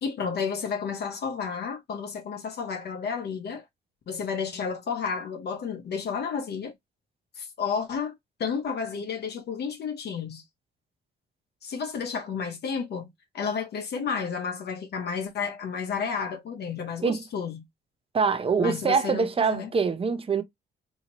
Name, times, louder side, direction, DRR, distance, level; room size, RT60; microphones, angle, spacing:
voice 1, 0.0-3.7 4.1-6.7 7.4-10.4 11.6-13.1 13.3-17.6 18.6-19.7, left 6 dB, 55° left, 0.7 m, -31 dB
voice 2, 18.1-20.4, right 5 dB, 30° right, 0.6 m, -24 dB
2.8 x 2.7 x 2.9 m
cardioid pair, 90°, 20 cm